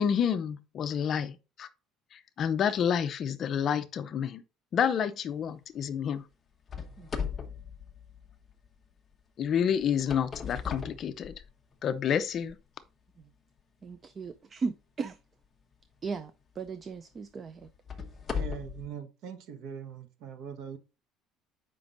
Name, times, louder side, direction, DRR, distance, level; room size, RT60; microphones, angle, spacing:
voice 1, 0.0-1.7 2.1-4.4 4.7-6.2 9.4-11.3 11.8-12.6, left 8 dB, 35° left, 0.6 m, -29 dB
sound 1, 6.7-8.7 9.8-11.8 12.4-12.5 13.2-13.3 15.9-16.1 16.7-16.8 17.6-18.9, left 6 dB, 20° left, 0.9 m, -37 dB
voice 2, 13.8-15.2 16.0-16.3 16.6-17.7, right 4 dB, 25° right, 0.4 m, -36 dB
voice 3, 18.3-20.8, right 7 dB, 60° right, 1.1 m, -41 dB
7.5 x 5.2 x 3.9 m
cardioid pair, 170°, 0 cm